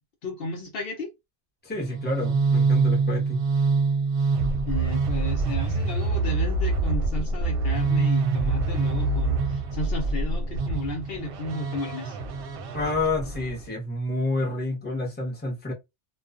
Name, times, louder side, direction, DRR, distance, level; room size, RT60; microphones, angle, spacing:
voice 1, 0.2-1.1 4.7-12.2, left 2 dB, 65° left, 0.8 m, -34 dB
voice 2, 1.6-3.4 12.7-15.7, left 2 dB, 10° left, 0.8 m, -29 dB
sound 1, 1.8-13.6, right 3 dB, 65° right, 0.7 m, -25 dB
2.3 x 2.3 x 2.3 m
omnidirectional pair, 1.1 m